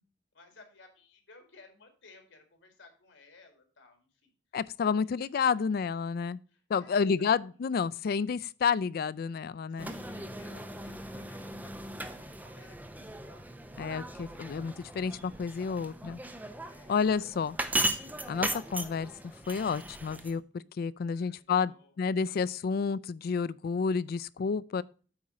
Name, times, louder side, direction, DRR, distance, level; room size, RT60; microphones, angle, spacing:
voice 1, 0.3-4.3 4.9-5.1 5.5-5.7 6.5-7.7 9.7-13.7 16.7-17.7 21.1-22.0, left 3 dB, 85° left, 2.1 m, -58 dB
voice 2, 4.5-6.4 6.7-9.9 13.8-16.2 16.9-17.6 18.3-20.4 20.8-24.8, left 5 dB, 55° left, 0.3 m, -30 dB
sound 1, 9.8-20.4, right 1 dB, 10° right, 0.7 m, -38 dB
8.7 x 4.2 x 4.9 m
head